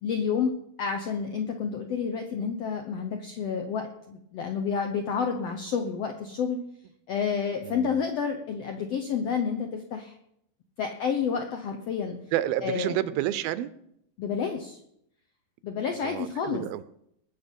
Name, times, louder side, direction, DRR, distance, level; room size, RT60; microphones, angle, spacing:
voice 1, 0.0-0.5 0.8-6.6 7.1-10.1 10.8-12.2 12.6-13.0 14.2-14.8 15.6-16.8, left 6 dB, 75° left, 5 dB, 1.4 m, -29 dB
voice 2, 7.6-8.0 12.3-13.7 16.0-16.8, right 13 dB, 85° right, 15 dB, 2.6 m, -30 dB
20.5 x 7.9 x 5.4 m, 0.74 s
omnidirectional pair, 4.2 m